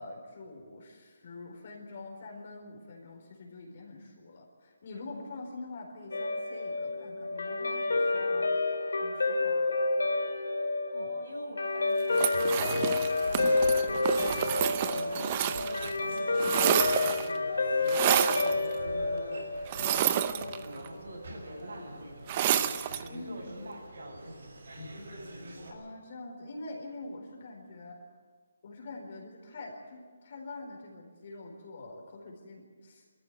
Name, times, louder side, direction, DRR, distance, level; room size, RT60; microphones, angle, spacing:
voice 1, 0.0-8.5 9.0-10.2 11.0-11.1 23.0-23.7 25.7-28.0 28.6-33.1, left 2 dB, 35° left, 1 dB, 4.3 m, -45 dB
Guitar, 6.1-20.7, left 3 dB, 90° left, 2.9 m, -29 dB
voice 2, 10.9-22.7 23.0-24.5, right 1 dB, 75° right, 0 dB, 7.6 m, -46 dB
sound 1, 12.1-15.9 16.2-17.4 17.9-18.5 19.7-20.9 22.3-23.1, right 10 dB, 20° right, 0.6 m, -29 dB
sound 2, 12.3-25.7, right 1 dB, 50° right, 6.5 m, -45 dB
22.0 x 14.0 x 9.4 m, 1.6 s
hypercardioid pair, 175°, 0 cm